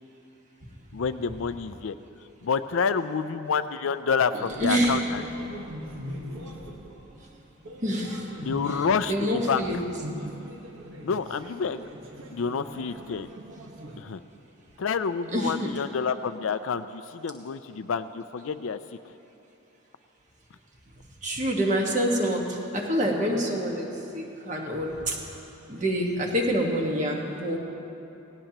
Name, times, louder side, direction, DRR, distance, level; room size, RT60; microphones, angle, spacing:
voice 1, 0.9-1.9 2.4-5.2 8.4-9.8 11.0-11.9 12.3-13.3 14.0-14.2 14.8-18.8, left 5 dB, 70° left, 12 dB, 0.4 m, -28 dB
voice 2, 4.3-5.0 7.8-8.3 9.1-9.8 15.3-15.7 21.2-25.2 25.7-27.6, equal, 35° right, -1 dB, 1.5 m, -26 dB
sound 1, 4.5-14.0, equal, 65° right, 1.4 m, -41 dB
18.0 x 16.5 x 3.0 m, 3.0 s
head